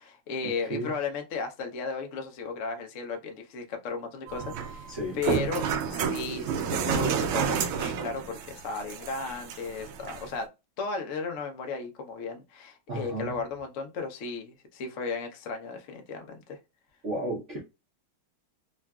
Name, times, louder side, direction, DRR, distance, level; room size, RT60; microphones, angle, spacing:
voice 1, 0.0-10.5 10.8-16.6, left 4 dB, 85° left, 0.6 m, -35 dB
sound 1, 4.3-10.3, right 7 dB, 80° right, 1.4 m, -30 dB
voice 2, 12.9-13.3 17.0-17.6, right 1 dB, 60° right, 0.7 m, -32 dB
3.8 x 2.2 x 2.3 m
omnidirectional pair, 2.3 m